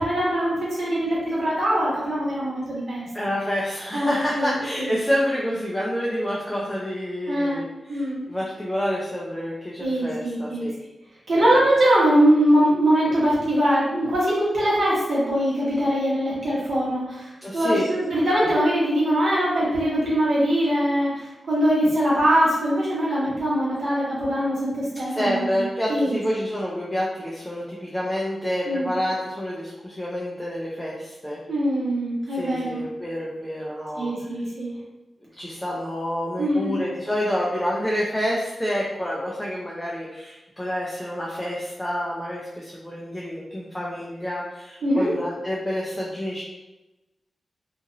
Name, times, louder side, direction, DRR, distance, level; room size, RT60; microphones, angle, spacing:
voice 1, 0.0-3.1 3.9-5.0 7.3-8.3 9.8-10.7 11.3-26.2 28.7-28.9 31.5-32.8 34.0-34.8 36.4-36.8 44.8-45.1, equal, 70° right, -7 dB, 1.3 m, -22 dB
voice 2, 3.1-10.7 11.3-11.5 17.4-17.9 25.1-31.4 32.4-34.4 35.4-46.4, equal, 10° left, -5 dB, 0.5 m, -28 dB
2.8 x 2.5 x 2.6 m, 1.0 s
wide cardioid pair, 95°, 0 cm